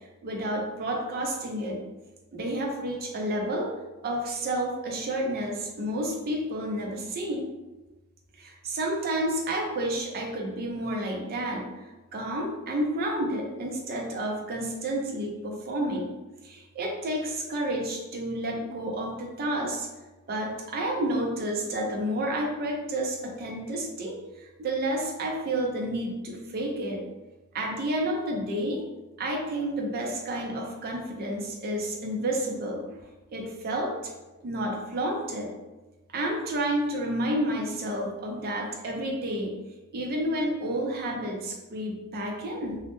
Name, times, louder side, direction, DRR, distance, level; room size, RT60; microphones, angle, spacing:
voice 1, 0.2-1.8 2.3-3.7 4.0-7.5 8.4-11.7 12.1-16.1 16.4-19.9 20.3-27.0 27.5-28.8 29.2-33.0 33.3-33.9 34.4-35.5 36.1-39.5 39.9-42.8, right 1 dB, 45° right, 1 dB, 0.4 m, -30 dB
2.1 x 2.0 x 2.9 m, 1.1 s
head